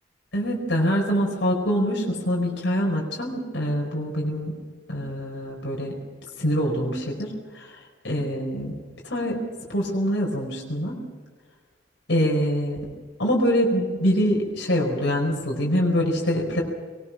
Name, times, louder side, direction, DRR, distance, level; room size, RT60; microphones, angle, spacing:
voice 1, 0.3-4.5 4.9-6.0 6.4-8.7 9.0-9.4 9.7-11.0 12.1-12.8 13.2-16.6, equal, 70° left, -1 dB, 4.7 m, -24 dB
22.5 x 21.0 x 5.9 m, 1.5 s
head